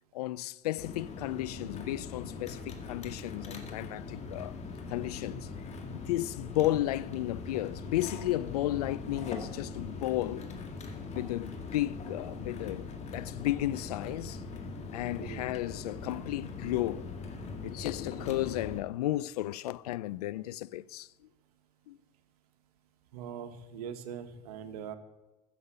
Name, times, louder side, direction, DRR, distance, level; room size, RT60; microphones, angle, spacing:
voice 1, 0.1-4.6 4.9-5.5 5.9-10.5 11.1-14.4 14.9-17.1 17.6-21.1 21.9-22.0, left 15 dB, 90° left, 0.5 m, -33 dB
sound 1, 0.8-18.8, left 4 dB, 35° left, 2.1 m, -41 dB
voice 2, 15.2-15.5 23.1-25.0, right 8 dB, 85° right, 1.3 m, -42 dB
14.0 x 7.3 x 8.0 m
supercardioid pair, 105°, 19 cm